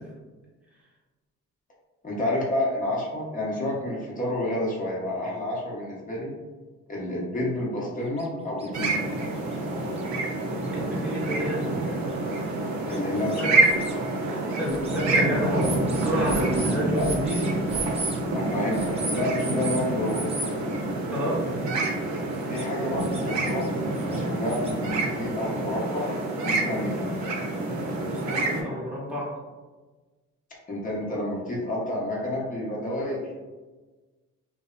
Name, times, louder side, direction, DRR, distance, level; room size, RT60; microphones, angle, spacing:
voice 1, 2.0-6.3 6.9-9.0 12.9-13.5 17.0-17.1 18.3-20.3 22.4-26.1 26.4-27.0 30.7-33.2, left 1 dB, 25° left, -4 dB, 0.8 m, -29 dB
sound 1, 8.2-8.3 8.6-8.7 9.5-9.6 10.0-10.1 10.6-10.7 11.6-11.7 12.1-12.2 12.9-14.0 14.6-15.0 15.6-18.2 18.7-19.8 20.1-20.5 22.4-22.7 23.0-23.7 23.9-24.7, right 3 dB, 20° right, 0.4 m, -35 dB
sound 2, 8.7-28.6, right 2 dB, 65° right, 0.6 m, -27 dB
voice 2, 10.7-12.2 13.4-13.6 14.3-17.6 21.1-21.4 28.1-29.4, equal, 5° right, -6 dB, 0.9 m, -30 dB
2.7 x 2.0 x 2.4 m, 1.3 s
cardioid pair, 90°, 30 cm